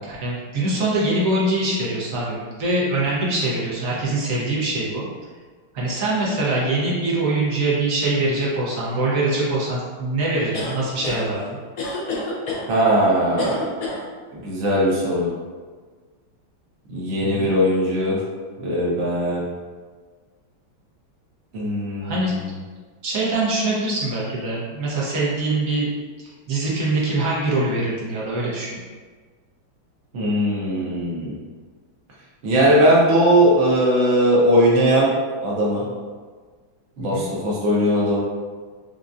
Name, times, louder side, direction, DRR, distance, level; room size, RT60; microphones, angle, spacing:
voice 1, 0.0-5.0 5.7-11.6 17.3-17.5 22.0-22.3 23.0-25.9 26.2-28.8 37.0-37.3, right 2 dB, 60° right, -6 dB, 0.9 m, -23 dB
sound 1, 10.5-11.2 11.8-12.6 13.4-14.0, left 3 dB, 85° left, 0.7 m, -28 dB
voice 2, 12.7-13.6 14.3-15.3 16.9-18.2 18.6-19.4 21.5-22.5 30.1-31.4 32.4-35.1 35.4-35.8 37.0-38.2, equal, 85° right, -5 dB, 0.6 m, -19 dB
5.0 x 2.3 x 2.5 m, 1.5 s
omnidirectional pair, 2.3 m